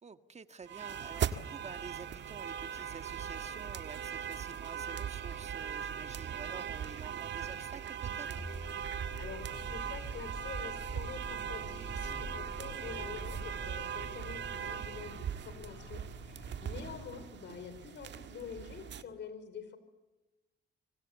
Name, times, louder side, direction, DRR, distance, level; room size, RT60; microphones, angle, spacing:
voice 1, 0.0-8.4 16.8-17.0, right 5 dB, 35° right, 10 dB, 1.6 m, -49 dB
sound 1, 0.7-19.0, right 8 dB, 65° right, 1.7 m, -39 dB
sound 2, 8.4-17.1, left 1 dB, 10° left, 5.0 m, -48 dB
voice 2, 8.8-19.8, left 6 dB, 65° left, 12 dB, 4.8 m, -47 dB
25.5 x 25.5 x 8.6 m, 1.1 s
cardioid pair, 90°, 20 cm